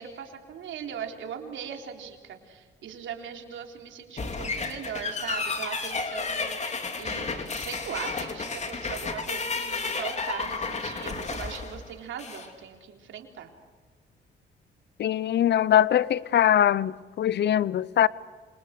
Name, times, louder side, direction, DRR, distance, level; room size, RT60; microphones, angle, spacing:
voice 1, 0.0-13.5, right 8 dB, 75° right, 3.7 m, -39 dB
sound 1, 4.2-12.5, left 4 dB, 35° left, 3.4 m, -32 dB
voice 2, 15.0-18.1, left 10 dB, 60° left, 0.8 m, -22 dB
27.0 x 26.5 x 6.6 m
cardioid pair, 90°, 20 cm